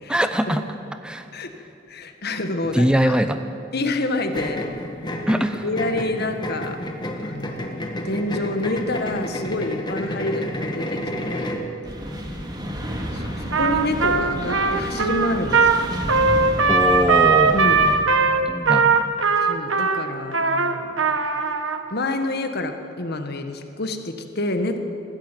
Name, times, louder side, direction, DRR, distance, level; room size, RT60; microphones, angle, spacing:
voice 1, 0.1-0.6 1.0-1.3 2.7-3.5 5.3-5.6 16.7-17.6 18.5-19.1, equal, 5° right, 9 dB, 0.6 m, -22 dB
voice 2, 1.9-3.2 3.7-4.7 5.3-6.8 7.2-11.6 13.1-15.9 17.5-17.8 19.4-21.0 21.9-24.8, left 2 dB, 55° left, 7 dB, 1.7 m, -28 dB
sound 1, 4.3-11.7, equal, 25° left, 1.9 m, -30 dB
sound 2, 11.8-18.0, equal, 20° right, 2.4 m, -31 dB
Trumpet, 13.5-21.8, right 4 dB, 90° right, 1.4 m, -19 dB
20.5 x 14.5 x 9.1 m, 2.7 s
head